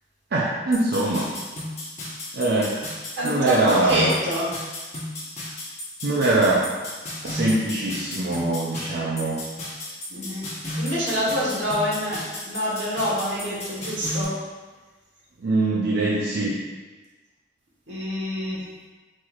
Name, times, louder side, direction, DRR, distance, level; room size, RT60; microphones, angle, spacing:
voice 1, 0.3-1.3 2.3-2.8 3.2-4.2 6.0-6.8 7.2-9.4 15.4-16.6, right 2 dB, 65° right, -5 dB, 0.5 m, -22 dB
sound 1, 0.7-14.2, left 1 dB, 40° left, 1.1 m, -34 dB
voice 2, 3.1-4.5 10.1-10.5 10.8-12.2 12.5-14.4 17.9-18.6, equal, 85° right, -6 dB, 1.4 m, -26 dB
4.4 x 4.2 x 2.5 m, 1.3 s
head